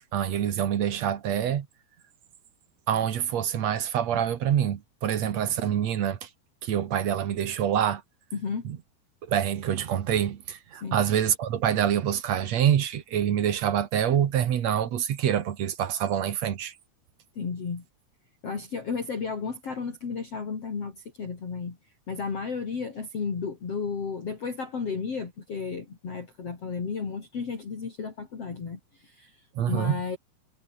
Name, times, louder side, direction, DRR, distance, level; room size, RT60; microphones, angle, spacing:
voice 1, 0.1-1.7 2.9-6.3 6.6-8.0 8.6-8.8 9.3-16.7 29.6-30.0, right 9 dB, 55° right, 2.2 m, -26 dB
voice 2, 8.3-8.7 10.7-11.0 17.4-17.9 18.4-21.8 22.1-29.4 29.7-30.2, left 5 dB, 40° left, 4.1 m, -33 dB
omnidirectional pair, 4.6 m